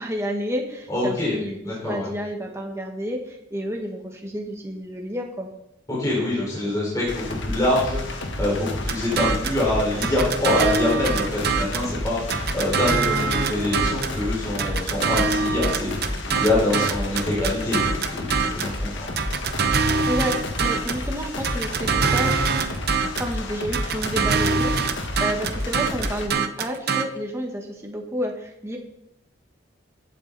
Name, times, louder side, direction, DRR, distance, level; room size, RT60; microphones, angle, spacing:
voice 1, 0.0-5.5 20.1-22.3 23.1-28.8, equal, 15° right, 1 dB, 1.4 m, -30 dB
voice 2, 0.9-1.3 1.6-2.1 5.9-19.1, left 1 dB, 15° left, -6 dB, 4.5 m, -25 dB
sound 1, 7.1-26.3, left 1 dB, 70° left, 1.7 m, -30 dB
sound 2, 8.9-9.6 10.0-11.9 12.3-14.2 14.6-18.8 19.2-21.1 21.4-23.3 23.7-27.0, right 5 dB, 50° right, 0.7 m, -24 dB
15.5 x 8.3 x 4.1 m, 0.81 s
head